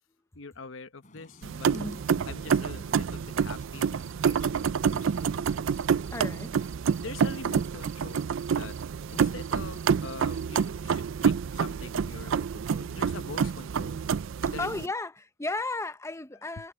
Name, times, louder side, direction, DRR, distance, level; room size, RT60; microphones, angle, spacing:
voice 1, 0.3-1.7 2.3-5.8 7.0-8.8 9.1-14.0 14.4-14.9, left 4 dB, 75° left, 1.0 m, -44 dB
sound 1, 1.0-6.1, left 1 dB, 40° left, 6.1 m, -54 dB
sound 2, 1.4-14.9, right 6 dB, 70° right, 0.4 m, -28 dB
voice 2, 1.7-2.0 6.1-6.6 14.6-16.7, left 2 dB, 15° left, 0.8 m, -34 dB
sound 3, 4.0-8.8 9.1-10.7, right 7 dB, 40° right, 3.9 m, -54 dB
head